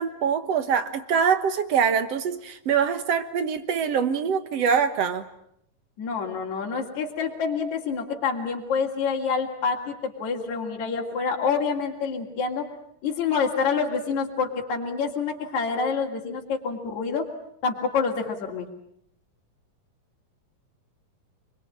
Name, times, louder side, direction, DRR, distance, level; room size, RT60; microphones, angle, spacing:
voice 1, 0.0-5.3, right 7 dB, 55° right, 10 dB, 2.0 m, -24 dB
voice 2, 6.0-12.7 13.0-17.3 17.6-18.7, left 5 dB, 55° left, 0 dB, 4.1 m, -27 dB
28.5 x 22.5 x 8.8 m, 0.73 s
omnidirectional pair, 4.1 m